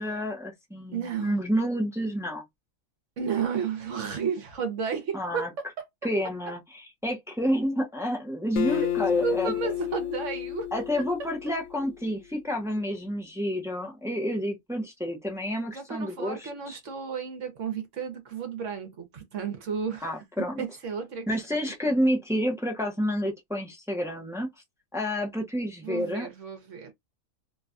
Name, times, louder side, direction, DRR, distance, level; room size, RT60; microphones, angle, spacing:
voice 1, 0.0-2.4 5.1-5.5 6.0-9.5 10.7-16.8 20.0-20.6 21.3-24.5 24.9-26.3, equal, 5° right, 0.4 m, -29 dB
voice 2, 0.9-1.4 3.2-5.7 8.7-8.9 9.2-10.7 15.7-20.1 20.6-21.3 25.8-26.9, right 6 dB, 65° right, 1.2 m, -32 dB
Acoustic guitar, 8.6-12.0, left 13 dB, 70° left, 0.8 m, -31 dB
3.0 x 2.2 x 2.5 m
omnidirectional pair, 1.4 m